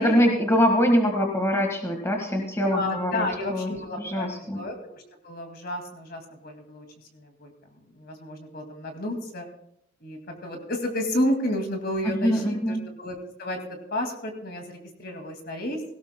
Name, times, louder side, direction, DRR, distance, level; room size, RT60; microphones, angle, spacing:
voice 1, 0.0-3.7 4.0-4.6 12.0-12.8, equal, 15° left, 2 dB, 1.6 m, -23 dB
voice 2, 2.7-6.8 7.1-7.5 8.0-9.5 10.0-13.6 13.9-15.8, left 1 dB, 50° left, 4 dB, 2.2 m, -31 dB
17.5 x 17.0 x 2.2 m, 0.75 s
head